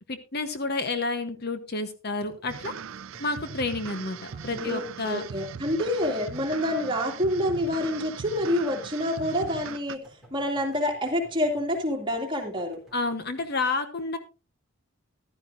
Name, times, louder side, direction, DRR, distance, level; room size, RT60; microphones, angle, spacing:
voice 1, 0.1-2.7 3.2-5.3 12.9-14.2, left 3 dB, 50° left, 9 dB, 1.0 m, -30 dB
sound 1, 2.2-13.4, right 1 dB, ahead, 3.5 m, -55 dB
sound 2, 2.5-10.0, right 7 dB, 65° right, 0.5 m, -40 dB
voice 2, 4.5-12.8, left 1 dB, 20° right, 1 dB, 2.4 m, -27 dB
14.5 x 12.0 x 2.6 m, 0.32 s
head